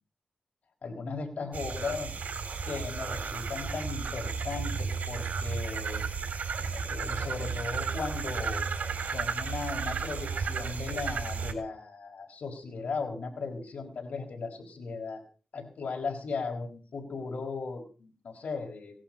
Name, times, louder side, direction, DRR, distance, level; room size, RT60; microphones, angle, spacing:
voice 1, 0.8-2.1 2.7-6.0 6.6-8.6 9.0-15.2 15.5-19.0, left 4 dB, 90° left, 2 dB, 4.6 m, -37 dB
sound 1, 1.5-11.5, right 5 dB, 85° right, 3.7 m, -33 dB
18.0 x 11.5 x 5.5 m, 0.39 s
wide cardioid pair, 115°, 3 cm